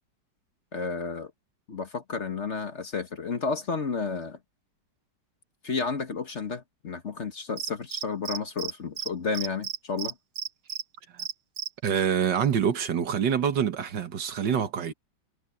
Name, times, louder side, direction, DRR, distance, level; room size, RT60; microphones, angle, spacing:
voice 1, 0.7-1.3 1.7-4.4 5.6-10.1, left 5 dB, 45° left, 1.4 m, -32 dB
Cricket, 7.6-8.7 9.0-9.1 9.3-10.8 11.2-11.7, right 9 dB, 50° right, 1.1 m, -33 dB
voice 2, 11.8-14.9, right 8 dB, 75° right, 2.0 m, -26 dB
omnidirectional pair, 2.0 m